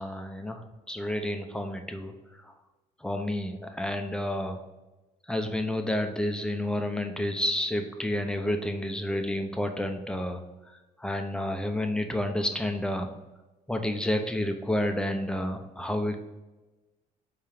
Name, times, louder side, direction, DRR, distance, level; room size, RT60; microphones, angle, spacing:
voice 1, 0.0-2.1 3.0-4.6 5.3-10.4 11.0-13.1 13.7-16.2, left 1 dB, 5° left, 5 dB, 0.8 m, -30 dB
5.5 x 4.5 x 5.1 m, 1.1 s
cardioid pair, 110°, 17 cm